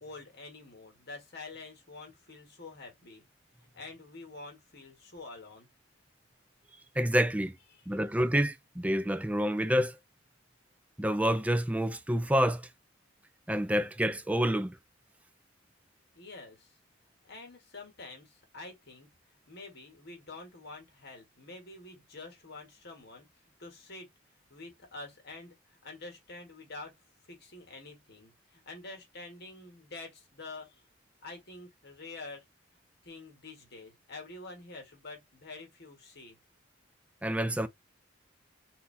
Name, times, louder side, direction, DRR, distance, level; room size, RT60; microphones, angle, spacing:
voice 1, 0.0-3.3 3.6-5.7 7.7-8.0 16.1-16.8 17.2-23.3 23.6-24.1 24.5-26.9 27.3-30.9 31.2-32.4 33.0-36.4, left 3 dB, 55° left, 1.9 m, -47 dB
voice 2, 7.0-7.5 7.9-10.0 11.0-12.6 13.5-14.8 37.2-37.7, equal, 5° right, 0.5 m, -28 dB
4.3 x 2.7 x 3.4 m
head